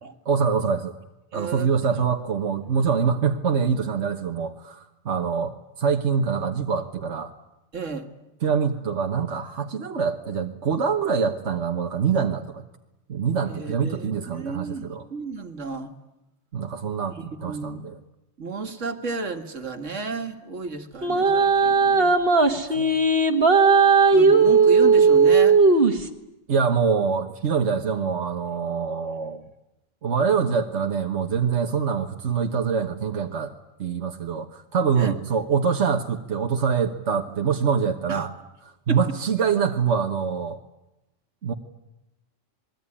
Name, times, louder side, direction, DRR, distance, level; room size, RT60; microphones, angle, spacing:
voice 1, 0.2-0.9 1.3-7.3 8.4-12.6 13.1-15.1 16.5-18.0 22.7-22.9 26.5-29.4 30.0-33.5 33.8-38.3 38.6-40.6 41.4-41.5, right 6 dB, 70° right, 4 dB, 1.6 m, -25 dB
voice 2, 1.3-2.0 7.7-8.1 13.5-15.9 17.3-17.8 18.4-22.2 24.1-25.6 34.9-35.1 38.1-38.2 38.9-39.0, right 4 dB, 85° right, 7 dB, 2.3 m, -33 dB
sound 1, 21.0-26.1, right 4 dB, 50° right, 2.0 m, -17 dB
27.5 x 21.5 x 10.0 m, 0.96 s
omnidirectional pair, 1.2 m